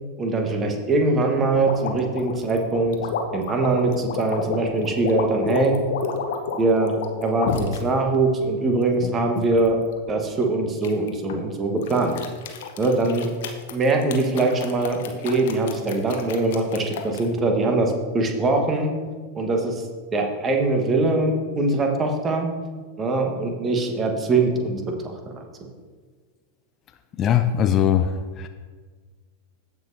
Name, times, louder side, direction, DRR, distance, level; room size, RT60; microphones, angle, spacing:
voice 1, 0.2-3.0 3.3-5.8 6.6-7.0 7.2-9.8 10.1-12.1 12.8-13.3 13.7-18.9 19.3-19.8 20.1-22.5 23.0-24.8 25.3-25.7, right 2 dB, 25° right, 3 dB, 1.3 m, -22 dB
sound 1, 1.5-7.8 8.4-9.7 10.8-11.4 11.8-17.3, left 6 dB, 55° left, 0.9 m, -30 dB
voice 2, 27.2-28.1, left 10 dB, 30° left, 8 dB, 0.4 m, -19 dB
15.5 x 5.5 x 2.7 m, 1.5 s
figure-of-eight pair, 90°, 0 cm